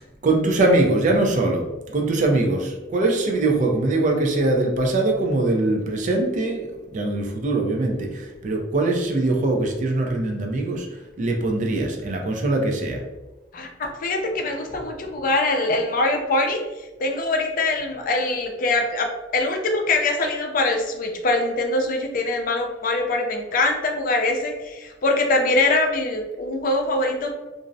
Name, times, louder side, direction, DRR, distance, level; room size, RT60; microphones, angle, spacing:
voice 1, 0.2-1.6 1.9-10.9 11.2-13.0, right 2 dB, 45° right, 2 dB, 0.4 m, -22 dB
voice 2, 13.5-27.3, left 2 dB, 50° left, 3 dB, 0.4 m, -23 dB
2.5 x 2.0 x 2.5 m, 1.1 s
head